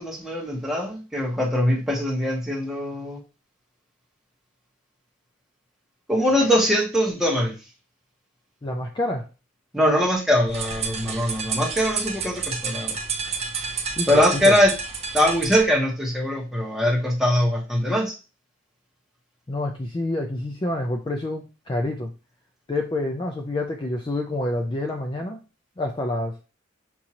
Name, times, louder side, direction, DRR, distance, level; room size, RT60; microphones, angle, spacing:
voice 1, 0.0-3.2 6.1-7.5 9.7-12.9 14.1-14.7 15.1-18.1, equal, ahead, -2 dB, 1.1 m, -22 dB
voice 2, 8.6-9.3 14.0-14.5 19.5-22.1 22.7-25.4 25.8-26.4, left 1 dB, 25° left, 3 dB, 0.4 m, -27 dB
sound 1, 10.5-15.6, right 5 dB, 35° right, 0.6 m, -30 dB
6.0 x 2.7 x 2.9 m, 0.32 s
head